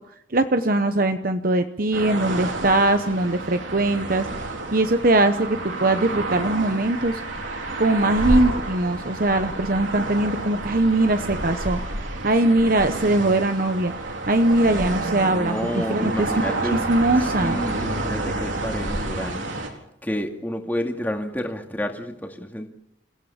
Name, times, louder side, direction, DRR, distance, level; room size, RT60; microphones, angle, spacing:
voice 1, 0.3-4.3 4.7-7.2 7.8-13.9 14.3-17.6, right 2 dB, 45° right, 8 dB, 0.9 m, -21 dB
sound 1, 1.9-19.7, right 2 dB, 85° right, 4.1 m, -29 dB
voice 2, 15.3-16.8 17.4-19.5 20.0-22.7, equal, 10° left, 3 dB, 2.3 m, -29 dB
29.0 x 16.0 x 7.2 m, 0.77 s
head